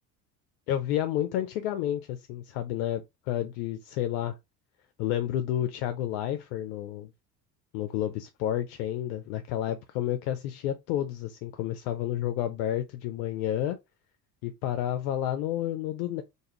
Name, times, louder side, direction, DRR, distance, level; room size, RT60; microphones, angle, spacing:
voice 1, 0.7-4.4 5.0-7.1 7.7-13.8 14.4-16.2, left 11 dB, 65° left, 0.6 m, -30 dB
2.6 x 2.4 x 3.0 m
hypercardioid pair, 70°, 49 cm